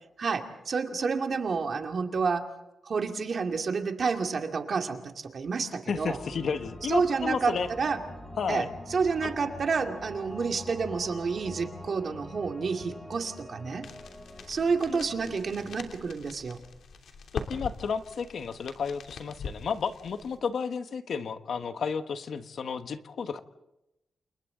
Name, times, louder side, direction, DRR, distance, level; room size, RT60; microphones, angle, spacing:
voice 1, 0.2-2.5 2.9-6.2 6.9-8.0 8.5-13.9 14.5-16.6, right 5 dB, 45° right, 4 dB, 2.3 m, -29 dB
voice 2, 5.9-7.7 8.4-8.7 9.2-9.3 14.9-15.1 17.3-23.4, left 6 dB, 60° left, 9 dB, 1.4 m, -32 dB
sound 1, 5.9-15.9, left 1 dB, 10° left, 6.0 m, -45 dB
sound 2, 13.8-20.4, left 5 dB, 80° left, 3.0 m, -43 dB
29.0 x 29.0 x 3.9 m, 0.91 s
wide cardioid pair, 160°, 0 cm